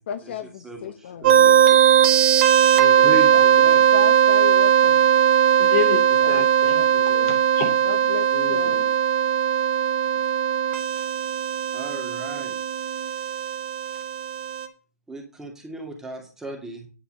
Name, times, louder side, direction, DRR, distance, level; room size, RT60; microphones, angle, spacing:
voice 1, 0.0-2.1 3.3-5.1 6.2-6.9 7.8-8.8, left 9 dB, 45° left, 9 dB, 0.9 m, -35 dB
voice 2, 0.6-1.8 2.9-3.9 10.1-10.2 11.0-11.1 11.7-13.5 13.9-14.0 15.1-16.9, right 1 dB, 5° right, 1 dB, 2.5 m, -37 dB
sound 1, 1.2-14.7, right 9 dB, 40° right, 1.7 m, -19 dB
voice 3, 2.7-3.1 5.6-7.8 8.3-8.9, left 8 dB, 25° left, 5 dB, 2.7 m, -30 dB
10.5 x 5.4 x 6.6 m, 0.35 s
figure-of-eight pair, 135°, 9 cm